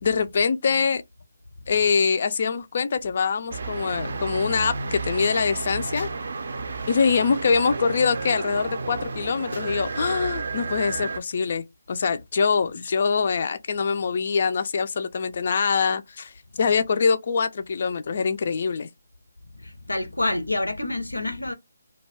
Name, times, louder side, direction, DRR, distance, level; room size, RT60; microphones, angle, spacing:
voice 1, 0.0-1.0 1.7-6.1 6.9-16.3 16.6-18.9, left 5 dB, 50° left, 0.3 m, -24 dB
sound 1, 3.5-11.2, right 4 dB, 60° right, 0.4 m, -32 dB
voice 2, 19.5-21.5, left 2 dB, 90° left, 0.6 m, -27 dB
2.3 x 2.2 x 3.3 m
figure-of-eight pair, 150°, 0 cm